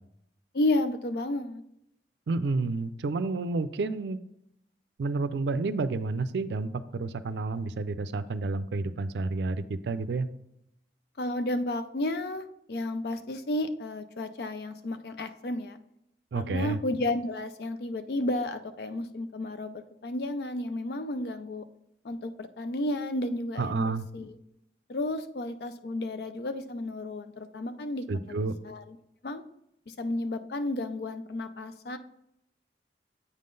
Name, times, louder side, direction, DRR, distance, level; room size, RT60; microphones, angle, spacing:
voice 1, 0.5-1.6 11.2-15.8 16.3-21.6 22.0-24.3 24.9-29.0 29.2-29.4 29.9-32.0, left 1 dB, 65° left, 10 dB, 0.4 m, -32 dB
voice 2, 2.3-4.2 5.0-10.3 16.3-16.8 23.6-24.1 28.1-28.5, right 3 dB, 80° right, 13 dB, 0.4 m, -30 dB
8.2 x 3.7 x 3.8 m, 0.80 s
head